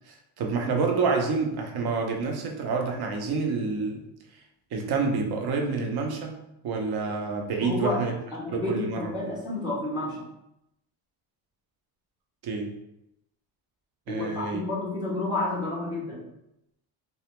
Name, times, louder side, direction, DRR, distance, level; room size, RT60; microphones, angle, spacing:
voice 1, 0.1-4.0 4.7-6.3 6.6-8.1 8.5-9.1 12.4-12.7 14.1-14.6, right 4 dB, 50° right, 2 dB, 0.6 m, -28 dB
voice 2, 7.6-8.0 8.3-10.3 14.1-16.3, left 2 dB, 10° right, -5 dB, 0.5 m, -30 dB
2.3 x 2.1 x 2.9 m, 0.85 s
cardioid pair, 110°, 50 cm